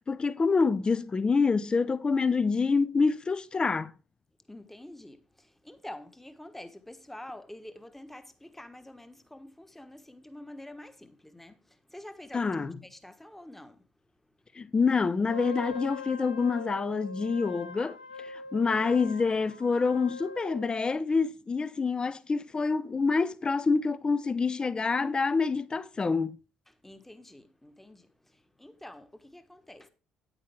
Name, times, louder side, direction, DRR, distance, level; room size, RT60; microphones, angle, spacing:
voice 1, 0.0-3.9 12.3-12.7 14.6-26.4, left 4 dB, 25° left, 0.6 m, -27 dB
voice 2, 4.5-13.9 14.2-14.6 26.7-29.9, left 1 dB, 5° left, 1.2 m, -47 dB
Wind instrument woodwind instrument, 15.2-20.9, left 3 dB, 85° left, 0.4 m, -42 dB
9.4 x 9.0 x 3.5 m
figure-of-eight pair, 50°, 3 cm